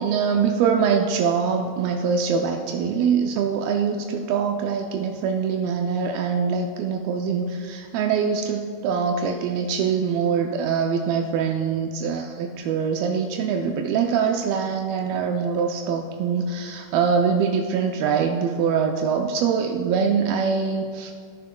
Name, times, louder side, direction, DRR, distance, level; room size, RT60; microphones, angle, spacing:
voice 1, 0.0-21.1, right 6 dB, 85° right, 2 dB, 2.4 m, -23 dB
18.5 x 10.0 x 2.2 m, 2.3 s
omnidirectional pair, 4.3 m